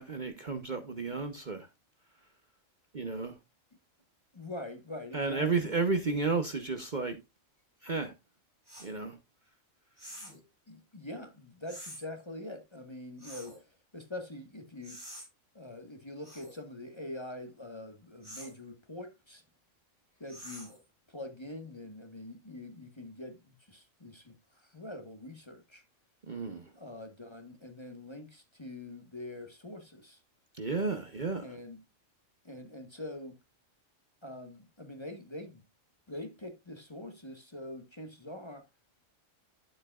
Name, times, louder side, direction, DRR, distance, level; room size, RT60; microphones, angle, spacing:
voice 1, 0.0-1.7 2.9-3.4 5.1-7.2 7.8-8.1 8.8-9.2 26.3-26.7 30.6-31.5, right 4 dB, 40° right, 1.0 m, -32 dB
voice 2, 4.3-5.7 10.2-10.4 10.7-15.0 15.5-19.4 20.2-20.7 21.1-25.8 26.7-30.2 31.4-31.8 32.4-33.4 34.2-35.6 36.1-38.7, left 1 dB, 20° left, 1.4 m, -44 dB
sound 1, 8.7-8.9 10.0-10.4 11.7-12.0 13.2-13.6 14.8-15.3 16.2-16.6 18.2-18.6 20.3-20.8, equal, 15° right, 4.2 m, -47 dB
11.5 x 7.7 x 2.4 m
omnidirectional pair, 1.4 m